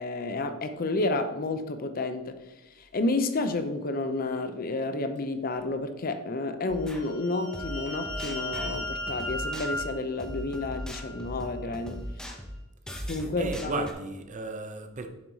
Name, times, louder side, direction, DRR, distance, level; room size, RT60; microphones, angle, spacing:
voice 1, 0.0-2.4 2.9-12.0 13.1-13.9, left 2 dB, 45° left, 9 dB, 0.6 m, -30 dB
sound 1, 6.7-7.0 7.5-13.9, equal, 5° left, 0.8 m, -39 dB
sound 2, 6.9-11.3, left 1 dB, 75° left, 2.6 m, -37 dB
voice 2, 13.4-15.1, right 3 dB, 35° right, 7 dB, 0.6 m, -34 dB
7.2 x 4.7 x 4.0 m, 1.0 s
head